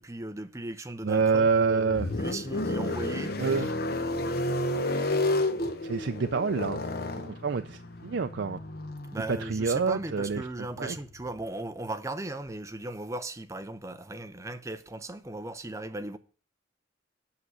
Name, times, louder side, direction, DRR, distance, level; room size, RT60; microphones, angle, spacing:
voice 1, 0.0-3.6 9.1-16.2, right 2 dB, 15° right, 0.6 m, -37 dB
voice 2, 1.0-2.1 3.4-3.7 5.8-6.8 7.2-8.6 9.3-10.5 10.8-10.9, right 5 dB, 60° right, 0.4 m, -27 dB
sound 1, 1.2-11.4, left 2 dB, 50° left, 0.9 m, -32 dB
8.5 x 6.3 x 8.0 m
head